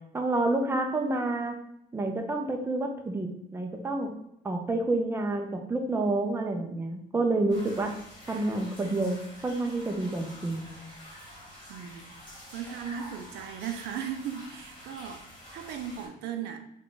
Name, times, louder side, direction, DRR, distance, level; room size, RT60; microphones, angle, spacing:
voice 1, 0.1-1.5 1.9-4.1 4.4-7.9 8.3-10.7, right 2 dB, 15° right, 3 dB, 0.5 m, -29 dB
sound 1, 7.5-16.1, equal, 30° left, 1.4 m, -47 dB
voice 2, 11.7-12.1 12.5-16.6, right 8 dB, 75° right, 6 dB, 0.5 m, -37 dB
3.4 x 2.3 x 3.9 m, 0.78 s
cardioid pair, 110°, 17 cm